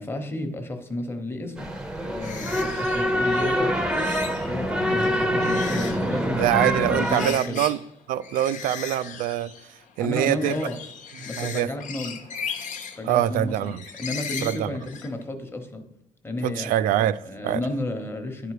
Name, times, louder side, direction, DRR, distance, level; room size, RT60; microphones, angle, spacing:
voice 1, 0.0-1.7 2.0-4.2 4.5-7.6 10.0-10.8 11.2-12.2 13.0-15.8 16.2-16.7 17.2-18.5, left 1 dB, 15° left, 1.1 m, -32 dB
sound 1, 1.6-7.3, equal, 5° right, 0.7 m, -25 dB
sound 2, 2.2-4.5 4.9-7.9 8.2-15.2, left 6 dB, 65° left, 1.0 m, -38 dB
voice 2, 6.4-7.8 8.1-9.5 10.0-10.6 11.4-11.7 13.0-13.8 14.4-14.7 16.4-17.6, right 12 dB, 90° right, 0.4 m, -24 dB
10.5 x 4.8 x 4.8 m
cardioid pair, 130°, 14 cm